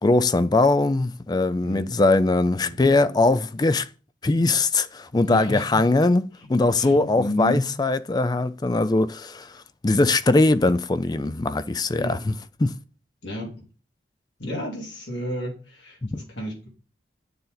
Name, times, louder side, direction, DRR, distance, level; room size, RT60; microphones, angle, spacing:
voice 1, 0.0-3.9 4.2-9.5 9.8-12.3 12.6-12.7 16.0-16.2, left 2 dB, 20° left, 0.4 m, -21 dB
voice 2, 1.6-1.9 2.6-3.2 5.3-5.8 6.8-7.6 11.9-12.2 13.2-13.5 14.4-16.7, equal, 75° left, 3.6 m, -31 dB
8.8 x 6.8 x 3.9 m
head